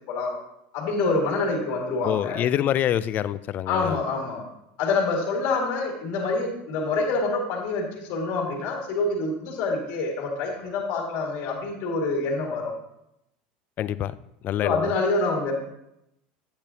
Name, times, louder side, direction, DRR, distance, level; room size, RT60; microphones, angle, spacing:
voice 1, 0.7-2.4 3.7-4.4 4.8-12.7 14.6-15.5, left 3 dB, 60° left, 0 dB, 2.1 m, -26 dB
voice 2, 2.0-4.0 13.8-14.1 14.4-14.9, left 11 dB, 40° left, 15 dB, 0.4 m, -26 dB
8.8 x 8.2 x 2.8 m, 0.81 s
supercardioid pair, 120°, 5 cm